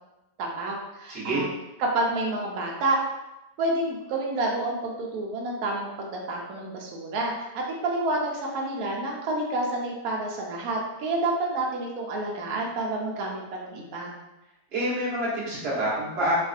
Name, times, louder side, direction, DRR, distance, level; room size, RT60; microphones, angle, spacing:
voice 1, 0.4-1.5 1.8-3.0 3.6-14.1, right 2 dB, 70° right, -1 dB, 1.0 m, -29 dB
voice 2, 1.1-1.4 14.7-16.3, right 1 dB, 40° right, -7 dB, 1.1 m, -27 dB
3.1 x 2.6 x 2.4 m, 0.95 s
omnidirectional pair, 1.8 m